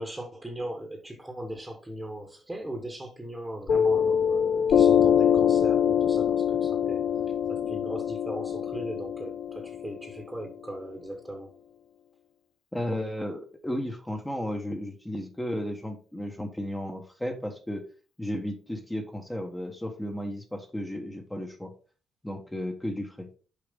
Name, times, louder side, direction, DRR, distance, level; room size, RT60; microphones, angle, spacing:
voice 1, 0.0-11.5, right 1 dB, 10° right, 1.4 m, -39 dB
Piano, 3.7-10.7, left 8 dB, 55° left, 0.3 m, -24 dB
voice 2, 12.7-17.8 18.2-21.7 22.2-23.3, left 1 dB, 10° left, 1.2 m, -34 dB
6.5 x 4.9 x 3.7 m
cardioid pair, 105°, 0 cm